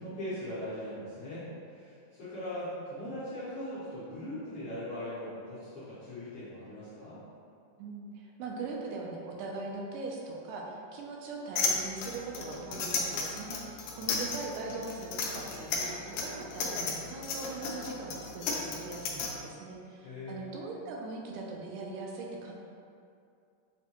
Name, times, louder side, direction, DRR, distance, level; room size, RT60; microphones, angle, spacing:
voice 1, 0.0-7.2 14.0-14.2 20.0-20.6, left 1 dB, 70° left, -12 dB, 1.3 m, -40 dB
voice 2, 7.8-22.5, right 3 dB, 80° right, -1 dB, 2.1 m, -41 dB
sound 1, 11.6-19.3, left 5 dB, 85° left, 1.5 m, -33 dB
6.5 x 2.2 x 2.9 m, 2.5 s
omnidirectional pair, 3.6 m